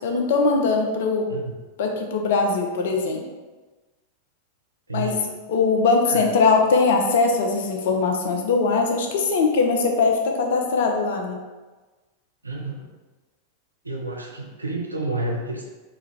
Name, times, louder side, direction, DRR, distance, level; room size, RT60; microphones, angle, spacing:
voice 1, 0.0-1.3 1.8-3.2 4.9-5.2 5.5-11.4, left 4 dB, 55° left, 2 dB, 0.7 m, -21 dB
voice 2, 4.9-5.3 6.0-6.3 12.4-12.9 13.8-15.7, right 2 dB, 80° right, 1 dB, 0.5 m, -30 dB
3.5 x 3.4 x 3.2 m, 1.3 s
figure-of-eight pair, 90°, 0 cm